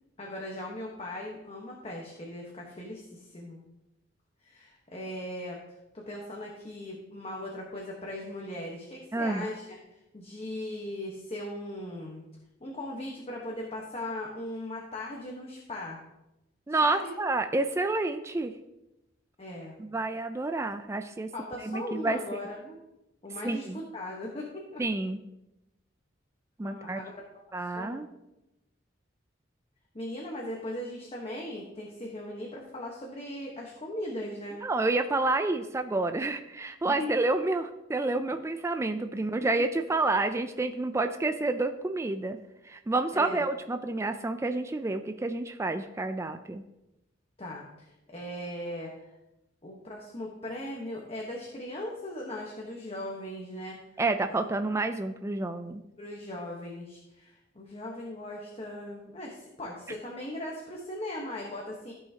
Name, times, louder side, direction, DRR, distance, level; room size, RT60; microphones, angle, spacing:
voice 1, 0.2-3.6 4.4-5.6 5.9-12.2 12.6-16.0 16.8-17.1 19.4-19.7 21.3-22.8 23.2-24.8 26.6-28.0 29.9-34.6 36.9-37.1 38.4-38.5 43.1-43.5 47.4-49.2 49.6-53.8 54.3-54.4 56.0-61.9, left 1 dB, 30° left, -2 dB, 1.2 m, -39 dB
voice 2, 9.1-9.5 16.7-18.5 19.8-21.3 21.6-22.4 23.4-23.8 24.8-25.2 26.6-27.0 27.5-28.1 34.6-42.4 42.6-46.6 54.0-55.8, right 2 dB, 15° right, 7 dB, 0.3 m, -29 dB
14.5 x 5.7 x 2.8 m, 0.92 s
head